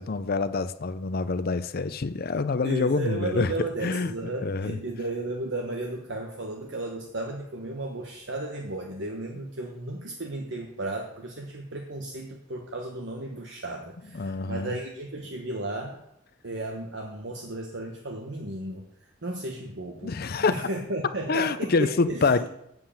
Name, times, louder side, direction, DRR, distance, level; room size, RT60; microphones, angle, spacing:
voice 1, 0.0-4.1 4.4-4.8 14.1-14.8 20.0-20.7 21.3-22.5, left 4 dB, 50° left, 12 dB, 0.6 m, -26 dB
voice 2, 2.6-16.0 16.4-18.9 19.2-22.3, right 2 dB, 65° right, 1 dB, 1.2 m, -34 dB
7.7 x 7.6 x 8.6 m, 0.80 s
head